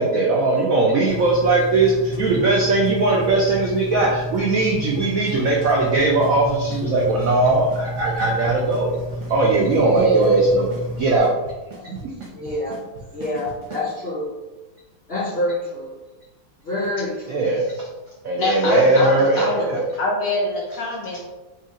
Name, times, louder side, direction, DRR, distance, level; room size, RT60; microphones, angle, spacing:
voice 1, 0.0-8.9 9.3-11.3 11.8-12.0 17.3-17.8 18.2-19.8, right 2 dB, 85° right, -2 dB, 0.7 m, -19 dB
Engine, 1.1-11.2, equal, 15° right, 1.0 m, -31 dB
Drum kit / Snare drum / Bass drum, 6.0-13.9, right 3 dB, 50° right, 1.0 m, -39 dB
voice 2, 9.9-10.4 11.8-11.9 12.3-12.8 13.1-14.3 15.1-15.9 16.6-17.5 18.6-19.1, equal, 85° left, -5 dB, 0.5 m, -26 dB
voice 3, 18.4-19.7 20.0-21.2, left 2 dB, 60° left, -2 dB, 0.9 m, -24 dB
3.2 x 2.9 x 3.7 m, 1.1 s
omnidirectional pair, 2.1 m